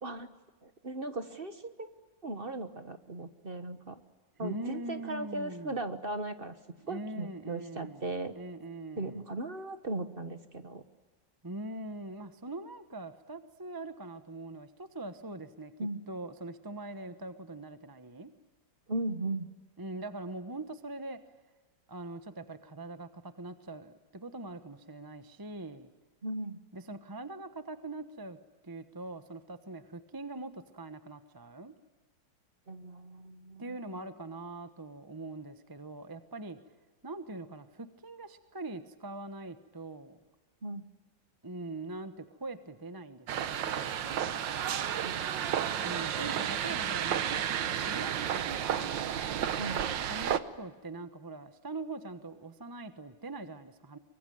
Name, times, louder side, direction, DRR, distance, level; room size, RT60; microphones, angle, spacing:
voice 1, 0.6-1.9 2.2-4.0 4.4-6.5 6.9-8.3 9.0-10.8 15.8-16.0 18.9-19.5 26.2-26.6 32.7-34.0 40.6-40.8 45.0-45.3 49.6-49.8, right 2 dB, 35° right, 9 dB, 1.4 m, -37 dB
voice 2, 4.4-5.7 6.8-9.2 11.4-18.3 19.8-21.2 21.9-25.9 26.7-28.4 28.6-31.7 33.6-36.6 37.0-40.2 41.4-44.4 45.8-49.0 50.1-54.0, right 2 dB, 15° right, 10 dB, 0.9 m, -42 dB
sound 1, 43.3-50.4, right 9 dB, 75° right, 1.7 m, -32 dB
24.0 x 24.0 x 9.3 m, 1.2 s
omnidirectional pair, 2.0 m